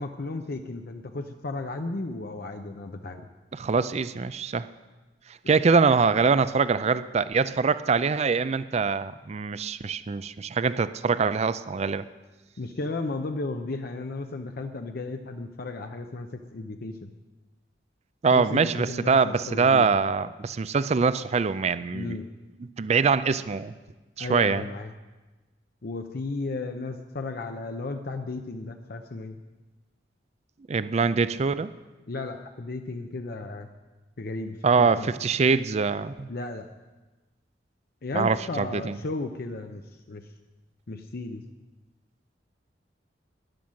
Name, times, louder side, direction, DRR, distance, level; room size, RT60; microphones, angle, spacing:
voice 1, 0.0-3.2 12.6-17.1 18.3-19.9 21.9-22.3 24.2-24.9 25.8-29.4 32.1-33.7 34.2-35.1 36.3-36.7 38.0-39.8 40.1-40.3 40.9-41.4, left 3 dB, 55° left, 5 dB, 0.7 m, -34 dB
voice 2, 3.5-4.7 5.5-12.0 18.2-22.2 22.6-23.7 24.2-24.6 30.7-31.7 34.6-36.3 38.1-39.0, right 5 dB, 35° right, 14 dB, 0.4 m, -24 dB
13.0 x 10.5 x 6.3 m, 1.2 s
head